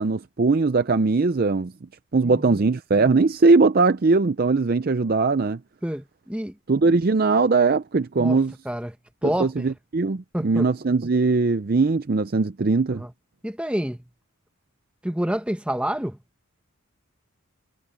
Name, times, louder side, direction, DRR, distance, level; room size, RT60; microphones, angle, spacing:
voice 1, 0.0-1.7 2.1-5.6 6.7-8.5 9.2-13.0, right 3 dB, 45° right, 0.5 m, -20 dB
voice 2, 2.2-2.6 5.8-6.5 8.2-8.4 8.7-8.9 9.2-9.6 10.3-10.7 13.0-13.1 13.4-14.0 15.0-16.2, equal, 5° right, 0.9 m, -28 dB
head